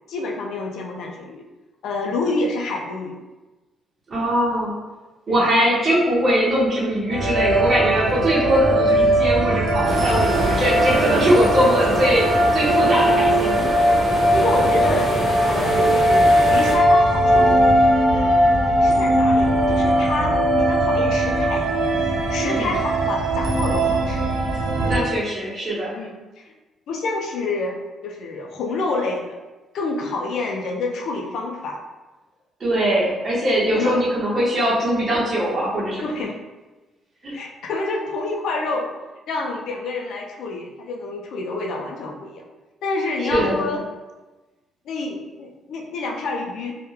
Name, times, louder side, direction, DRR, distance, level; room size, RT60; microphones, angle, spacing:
voice 1, 0.1-1.4 1.8-3.2 5.3-5.5 14.3-15.1 15.4-17.6 18.1-18.4 18.8-21.7 22.3-24.3 25.9-26.1 26.9-29.4 29.7-31.8 33.5-34.0 36.0-36.4 37.3-38.9 39.3-42.4 42.8-43.8 44.9-46.8, left 3 dB, 75° left, 0 dB, 0.4 m, -28 dB
voice 2, 4.1-4.7 5.3-12.3 12.5-13.7 22.4-22.7 24.8-25.9 32.6-36.1 37.2-37.3 43.2-43.7, equal, 40° right, -7 dB, 0.7 m, -21 dB
sound 1, 7.1-25.0, right 1 dB, 75° right, 0.5 m, -19 dB
sound 2, 9.8-16.8, equal, 5° left, 0.7 m, -27 dB
2.1 x 2.1 x 3.0 m, 1.2 s
cardioid pair, 90°, 0 cm